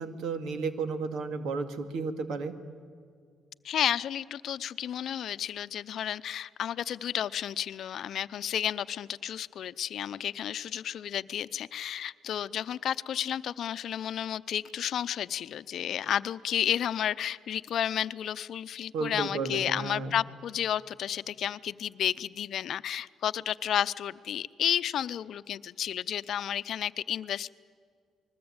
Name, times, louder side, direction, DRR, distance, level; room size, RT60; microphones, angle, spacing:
voice 1, 0.0-2.5 18.9-20.1, right 4 dB, 80° right, 8 dB, 2.2 m, -33 dB
voice 2, 3.6-27.5, left 10 dB, 70° left, 15 dB, 0.7 m, -32 dB
29.0 x 21.0 x 8.9 m, 2.1 s
cardioid pair, 90°, 0 cm